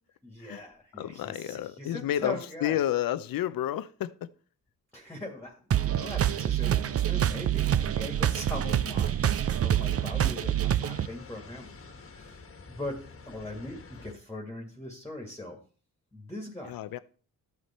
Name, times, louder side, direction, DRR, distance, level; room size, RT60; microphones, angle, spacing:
voice 1, 0.2-2.8 4.9-11.7 12.1-12.4 12.7-13.0 13.3-15.6 16.1-16.8, left 1 dB, 5° left, 2.0 m, -41 dB
voice 2, 0.9-4.3 16.7-17.0, left 12 dB, 75° left, 0.7 m, -31 dB
sound 1, 5.7-11.1, right 10 dB, 45° right, 0.6 m, -26 dB
sound 2, 8.0-14.1, left 3 dB, 40° left, 1.5 m, -49 dB
13.0 x 8.3 x 4.3 m
cardioid pair, 105°, 35 cm